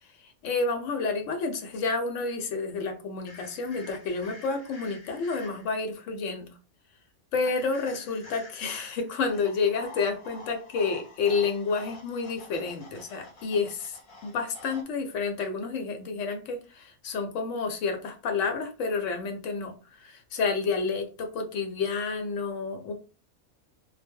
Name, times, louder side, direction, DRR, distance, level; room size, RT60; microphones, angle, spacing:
voice 1, 0.0-6.6 7.3-22.9, left 4 dB, 90° left, 6 dB, 0.9 m, -30 dB
sound 1, 3.3-5.8 7.4-14.8, left 2 dB, 50° left, 0.7 m, -48 dB
2.1 x 2.1 x 3.4 m, 0.34 s
omnidirectional pair, 1.2 m